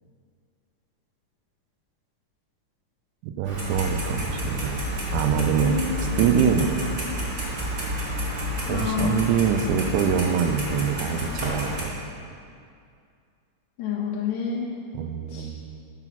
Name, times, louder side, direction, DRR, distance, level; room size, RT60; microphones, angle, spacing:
voice 1, 3.2-4.8 5.1-5.8 6.2-6.9 8.7-11.9 14.9-15.6, right 7 dB, 85° right, 7 dB, 2.0 m, -24 dB
Clock, 3.4-11.8, equal, 45° right, 1.1 m, -30 dB
voice 2, 5.6-6.2 8.7-9.2 13.8-14.7 15.3-15.6, left 6 dB, 75° left, -1 dB, 1.8 m, -28 dB
9.1 x 4.0 x 5.8 m, 2.4 s
omnidirectional pair, 3.5 m